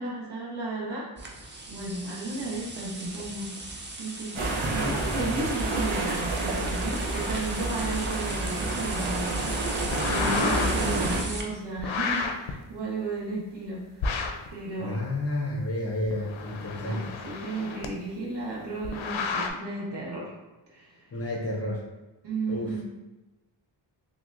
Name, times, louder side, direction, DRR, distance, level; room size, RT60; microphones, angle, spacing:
voice 1, 0.0-3.5 4.0-14.1 14.5-15.0 16.7-17.0 17.2-20.3 20.7-21.1 22.2-22.8, right 2 dB, 60° right, -5 dB, 1.2 m, -34 dB
sound 1, 1.2-11.4, right 2 dB, 25° right, 0.4 m, -39 dB
sound 2, 4.3-11.2, right 2 dB, 80° right, 0.8 m, -29 dB
voice 2, 4.5-5.4 14.8-17.1 21.1-21.8 22.5-22.7, left 1 dB, 35° left, -1 dB, 0.5 m, -31 dB
sound 3, 9.8-10.9 11.8-12.5 14.0-14.5 16.0-17.9 18.8-19.5, left 4 dB, 80° left, 0.5 m, -31 dB
5.8 x 2.1 x 2.4 m, 1.1 s
wide cardioid pair, 170°, 46 cm